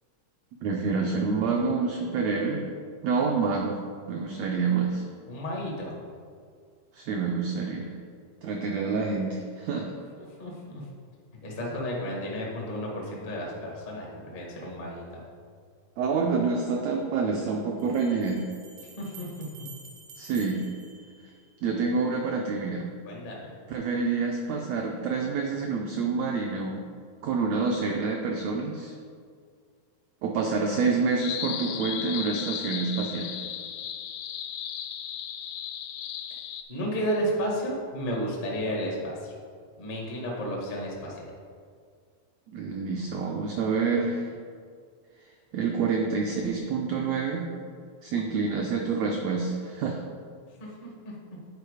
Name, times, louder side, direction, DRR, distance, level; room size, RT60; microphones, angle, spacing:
voice 1, 0.6-2.6 3.0-3.8 4.1-5.0 6.9-7.9 8.4-9.9 16.0-18.4 20.2-20.6 21.6-22.8 23.7-26.8 27.2-28.9 30.2-33.3 42.5-44.3 45.5-47.5 48.0-50.0, right 4 dB, 90° right, 0 dB, 1.5 m, -27 dB
voice 2, 5.3-6.0 10.4-10.8 11.4-15.2 19.0-19.3 23.0-23.4 36.7-39.3 39.8-41.3 50.6-51.1, equal, 65° left, -3 dB, 0.5 m, -32 dB
Bell, 17.8-21.7, right 4 dB, 70° right, 1.3 m, -50 dB
sound 1, 31.2-36.6, left 10 dB, 80° left, 1.9 m, -35 dB
9.6 x 4.6 x 4.9 m, 2.1 s
omnidirectional pair, 3.9 m